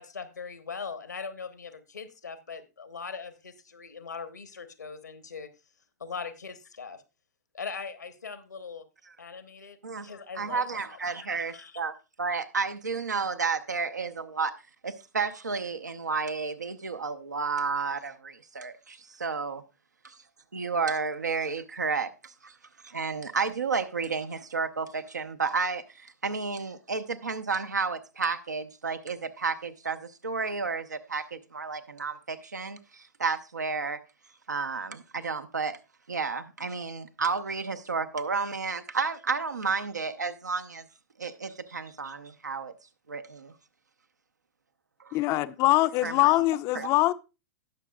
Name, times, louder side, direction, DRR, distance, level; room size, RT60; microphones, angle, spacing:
voice 1, 0.0-5.5 6.0-7.0 7.5-8.8 9.2-11.0 11.3-11.8, left 5 dB, 75° left, 1.1 m, -40 dB
voice 2, 10.4-11.9 12.2-14.5 14.8-19.6 20.0-20.2 20.5-22.6 22.8-34.0 34.5-35.8 36.1-40.8 41.2-42.7 43.1-43.5 45.0-45.2 46.0-46.3 46.7-46.9, right 4 dB, 80° right, 0.8 m, -31 dB
voice 3, 45.1-47.1, left 18 dB, 30° left, 0.5 m, -23 dB
18.5 x 6.3 x 2.3 m
figure-of-eight pair, 105°, 9 cm